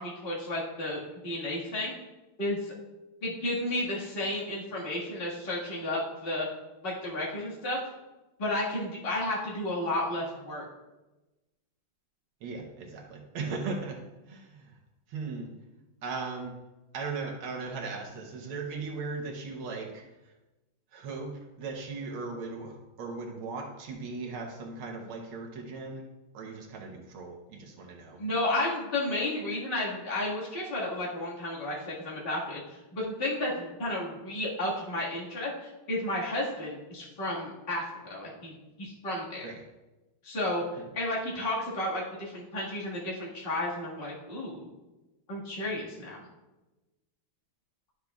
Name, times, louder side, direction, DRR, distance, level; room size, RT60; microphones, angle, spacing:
voice 1, 0.0-1.9 2.4-2.7 3.2-6.5 6.8-7.8 8.4-10.7 28.2-39.5 40.2-40.6 40.9-44.7 45.3-46.2, left 1 dB, 30° left, -6 dB, 1.8 m, -32 dB
voice 2, 12.4-14.0 14.3-14.8 15.1-15.5 16.0-16.5 16.9-20.0 20.9-21.3 21.6-26.0 26.3-28.2 39.4-39.6, right 4 dB, 80° right, 1 dB, 1.8 m, -38 dB
11.5 x 6.5 x 2.3 m, 1.1 s
omnidirectional pair, 2.3 m